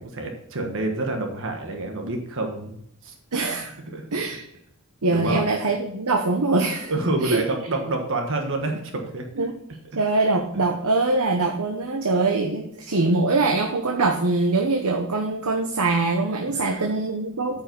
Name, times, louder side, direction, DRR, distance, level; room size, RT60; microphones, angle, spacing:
voice 1, 0.0-3.1 3.9-4.0 5.1-5.4 6.9-9.3 10.5-10.6 16.5-16.8 17.5-17.6, right 2 dB, 60° right, 3 dB, 1.3 m, -28 dB
voice 2, 3.3-3.7 4.1-4.4 5.0-6.9 7.2-7.4 9.4-9.5 9.9-17.6, right 3 dB, 85° right, 3 dB, 1.0 m, -23 dB
9.1 x 5.6 x 5.3 m, 0.72 s
head